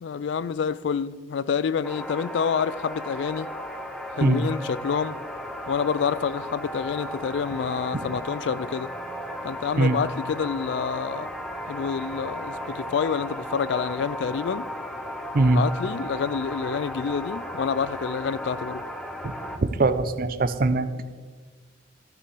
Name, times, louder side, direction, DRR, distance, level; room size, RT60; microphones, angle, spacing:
voice 1, 0.0-3.5 4.2-5.2 5.7-8.9 9.4-11.3 11.7-14.7 15.4-18.8, left 6 dB, 60° left, 0.3 m, -28 dB
sound 1, 1.8-19.6, equal, 5° left, 0.7 m, -35 dB
voice 2, 19.6-20.9, right 2 dB, 45° right, 0.5 m, -21 dB
14.0 x 5.8 x 4.7 m
head